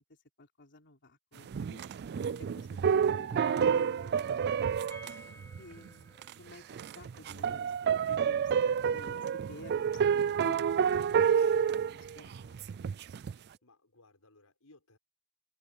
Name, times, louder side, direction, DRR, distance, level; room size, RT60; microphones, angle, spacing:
voice 1, 0.0-1.9 2.4-2.7 3.0-4.5 5.6-6.6 6.9-8.5 8.9-12.6, left 2 dB, 55° left, 3.6 m, -53 dB
sound 1, 1.5-5.9 6.2-6.3 6.7-13.3, right 7 dB, 50° right, 0.3 m, -29 dB
sound 2, 4.9-10.7 10.9-11.0 11.3-11.4, equal, 10° left, 3.9 m, -57 dB
voice 2, 5.2-5.5 13.6-15.0, left 2 dB, 85° left, 6.6 m, -62 dB
open air
head